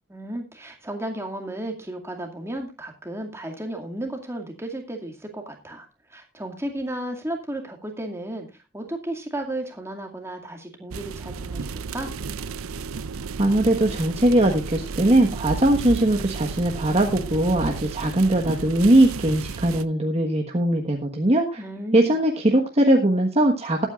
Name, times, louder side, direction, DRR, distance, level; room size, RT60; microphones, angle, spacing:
voice 1, 0.1-8.5 8.7-12.1 21.6-22.1, right 1 dB, 10° right, 2 dB, 2.2 m, -34 dB
sound 1, 10.9-19.9, right 5 dB, 70° right, 0.6 m, -33 dB
voice 2, 13.4-21.6 21.9-23.9, right 1 dB, 30° right, 2 dB, 1.4 m, -20 dB
20.5 x 9.1 x 2.5 m, 0.25 s
head